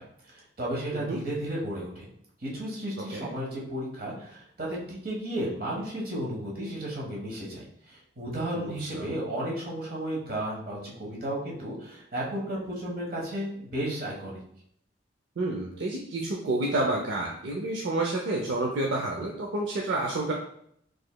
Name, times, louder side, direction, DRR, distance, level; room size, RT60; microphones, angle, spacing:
voice 1, 0.0-2.1 2.4-14.4, right 1 dB, 50° right, -3 dB, 1.2 m, -33 dB
voice 2, 8.5-9.1 15.4-20.3, right 2 dB, 75° right, 0 dB, 0.5 m, -29 dB
4.9 x 3.1 x 2.2 m, 0.69 s
head